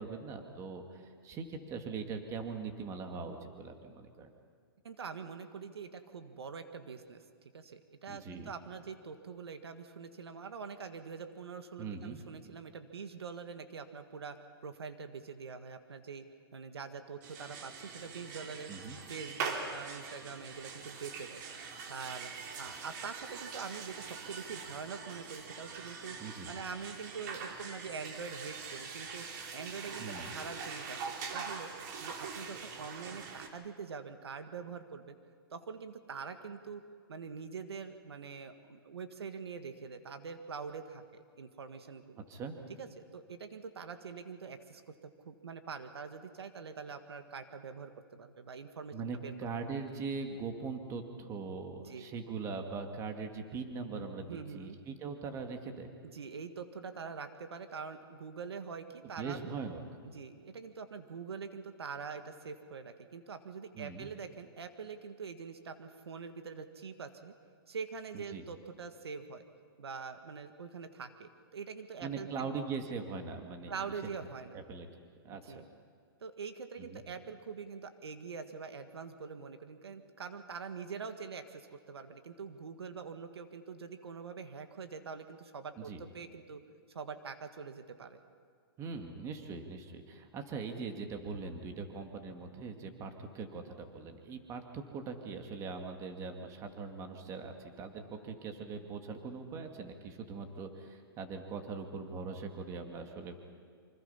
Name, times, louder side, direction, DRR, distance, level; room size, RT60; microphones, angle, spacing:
voice 1, 0.0-4.3 8.1-8.5 11.8-12.2 18.7-19.0 26.2-26.5 30.0-30.3 42.3-42.6 48.9-55.9 59.0-59.8 63.8-64.1 68.1-68.4 72.0-73.7 74.5-74.9 75.2-75.7 76.8-77.0 85.8-86.0 88.8-103.4, right 4 dB, 25° right, 5 dB, 2.1 m, -41 dB
voice 2, 4.8-7.2 7.5-16.2 16.5-18.7 19.1-21.4 21.9-22.3 22.6-26.2 26.5-29.3 29.5-31.7 32.0-35.2 35.5-36.8 37.1-42.2 42.8-49.3 51.8-52.1 54.3-54.8 56.0-59.4 60.1-67.3 67.7-69.4 69.8-72.5 73.7-74.6 75.4-75.6 76.2-86.6 86.9-88.2, right 5 dB, 85° right, 8 dB, 1.7 m, -44 dB
sound 1, 17.2-33.5, right 5 dB, 50° right, 3.1 m, -43 dB
27.0 x 25.5 x 5.7 m, 2.1 s
hypercardioid pair, 145°, 13 cm